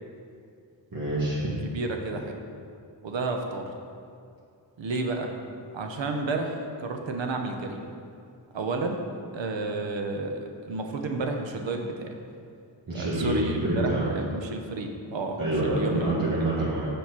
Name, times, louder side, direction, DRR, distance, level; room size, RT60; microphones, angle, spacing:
voice 1, 0.9-1.5 12.9-14.1 15.4-16.9, right 1 dB, 50° right, -9 dB, 1.9 m, -27 dB
voice 2, 1.6-2.4 3.0-3.7 4.8-5.3 5.7-7.9 8.5-9.0 9.3-12.1 12.9-16.2, right 3 dB, 80° right, 4 dB, 1.0 m, -31 dB
7.2 x 5.1 x 6.0 m, 2.4 s
wide cardioid pair, 95°, 44 cm